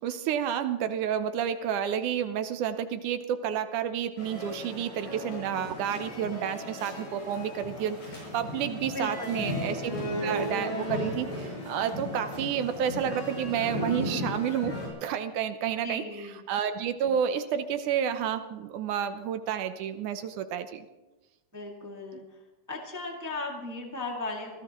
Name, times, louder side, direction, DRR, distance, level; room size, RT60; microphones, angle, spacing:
voice 1, 0.0-9.9 10.2-14.8 15.0-20.9, right 8 dB, 75° right, 9 dB, 2.1 m, -30 dB
sound 1, 4.2-14.9, left 1 dB, 80° left, 8.7 m, -35 dB
voice 2, 8.9-9.5 15.8-16.4 21.5-22.2 22.7-24.6, left 2 dB, 10° right, 0 dB, 1.1 m, -37 dB
25.5 x 16.5 x 3.0 m, 1.1 s
omnidirectional pair, 4.0 m